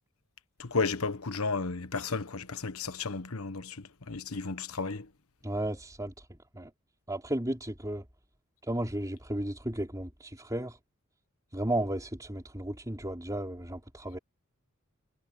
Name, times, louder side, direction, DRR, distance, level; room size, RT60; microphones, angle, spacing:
voice 1, 0.6-3.8 4.1-5.0, left 4 dB, 75° left, 1.2 m, -33 dB
voice 2, 5.4-6.1 6.5-6.7 7.1-8.0 8.7-10.8 11.5-14.2, right 1 dB, 15° right, 4.1 m, -34 dB
head